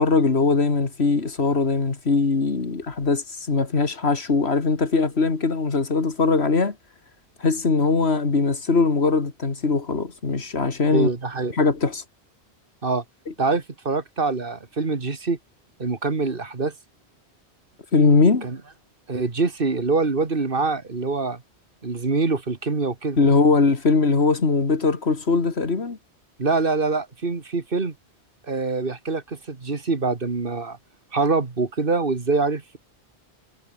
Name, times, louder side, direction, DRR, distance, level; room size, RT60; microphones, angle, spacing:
voice 1, 0.0-6.8 7.4-11.1 11.6-12.0 13.3-13.4 17.9-18.5 23.2-26.0, left 4 dB, 75° left, 2.5 m, -21 dB
voice 2, 10.9-11.5 12.8-13.0 13.4-15.4 15.8-16.7 18.4-18.6 19.1-21.4 21.8-23.2 26.4-27.9 28.5-30.8 31.1-32.8, right 3 dB, 55° right, 2.2 m, -24 dB
omnidirectional pair, 1.1 m